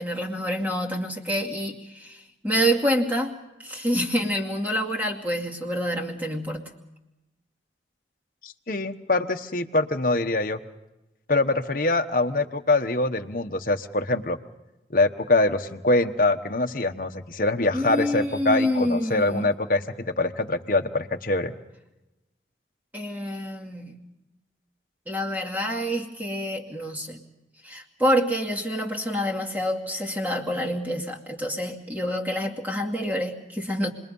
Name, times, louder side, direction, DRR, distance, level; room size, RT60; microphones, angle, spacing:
voice 1, 0.0-6.6 17.7-19.5 22.9-24.0 25.1-27.2 27.6-33.9, equal, 10° right, 0 dB, 2.4 m, -27 dB
voice 2, 8.4-10.6 11.3-14.4 14.9-21.5, left 2 dB, 50° left, 6 dB, 1.2 m, -24 dB
29.5 x 21.5 x 5.5 m, 0.99 s
head